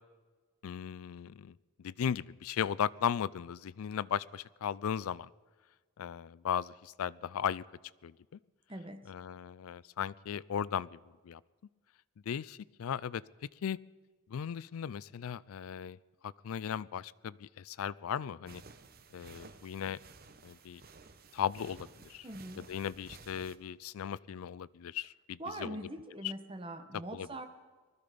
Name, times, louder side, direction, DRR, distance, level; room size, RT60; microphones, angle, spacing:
voice 1, 0.6-1.5 1.8-5.3 6.0-7.6 8.0-8.1 9.1-11.0 11.2-11.4 12.3-13.2 13.6-13.8 14.3-16.0 16.2-18.6 19.1-20.0 20.4-20.8 21.3-22.3 22.6-25.8 26.2-26.3 27.1-27.3, left 8 dB, 85° left, 21 dB, 0.4 m, -36 dB
voice 2, 8.7-9.0 22.2-22.7 25.4-27.5, right 1 dB, 25° right, 7 dB, 1.1 m, -42 dB
sound 1, 18.5-23.6, right 4 dB, 45° right, 0.8 m, -54 dB
20.0 x 13.5 x 5.1 m, 1.4 s
head